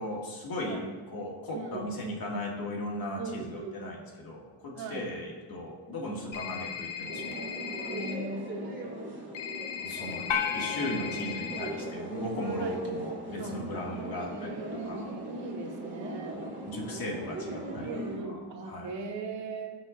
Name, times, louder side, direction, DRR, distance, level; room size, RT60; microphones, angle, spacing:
voice 1, 0.0-0.8 1.1-7.4 9.8-10.3 10.5-15.1 16.3-17.9 18.2-18.4 18.6-18.9, left 1 dB, 50° left, -1 dB, 2.2 m, -37 dB
voice 2, 1.5-1.9 3.2-3.8 4.7-5.1 7.9-9.1 12.6-12.8 13.4-13.6 14.2-16.4 17.9-19.8, right 3 dB, 70° right, 1 dB, 1.7 m, -39 dB
sound 1, 6.3-8.1 9.3-11.7, left 8 dB, 90° left, 1.2 m, -38 dB
sound 2, 7.1-18.2, right 1 dB, 25° right, 2.4 m, -39 dB
sound 3, 10.3-12.8, left 8 dB, 70° left, 0.9 m, -35 dB
16.5 x 6.0 x 2.6 m, 1.4 s
cardioid pair, 115°, 45 cm